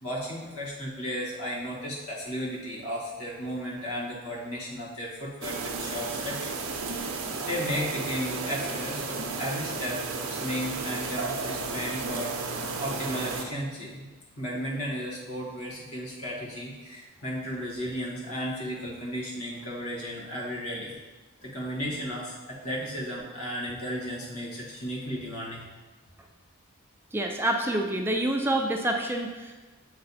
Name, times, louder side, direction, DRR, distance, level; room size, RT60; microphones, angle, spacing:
voice 1, 0.0-6.6 7.0-14.1 14.4-21.0 21.4-25.6, equal, 90° left, -5 dB, 1.7 m, -34 dB
sound 1, 5.4-13.4, right 4 dB, 70° right, 0.6 m, -33 dB
voice 2, 27.1-29.5, right 1 dB, 10° right, 2 dB, 0.4 m, -27 dB
7.7 x 3.2 x 4.1 m, 1.3 s
head